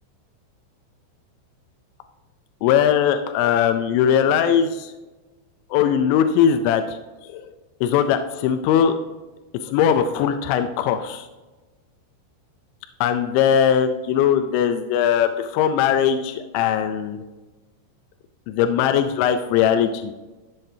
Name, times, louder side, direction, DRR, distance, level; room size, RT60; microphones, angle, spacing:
voice 1, 2.6-4.9 5.7-7.0 7.3-7.5 7.8-9.0 9.6-11.3 13.0-17.2 18.5-20.1, left 8 dB, 80° left, 7 dB, 2.8 m, -20 dB
14.0 x 7.7 x 2.7 m, 1.2 s
omnidirectional pair, 5.6 m